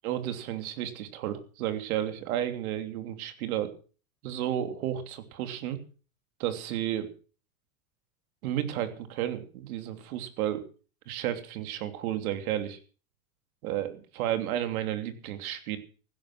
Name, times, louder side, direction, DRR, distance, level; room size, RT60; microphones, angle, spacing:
voice 1, 0.0-3.7 4.2-5.8 6.4-7.1 8.4-10.6 11.1-12.8 13.6-15.8, right 11 dB, 75° right, 8 dB, 3.1 m, -32 dB
15.5 x 12.0 x 6.2 m, 0.39 s
supercardioid pair, 135°, 43 cm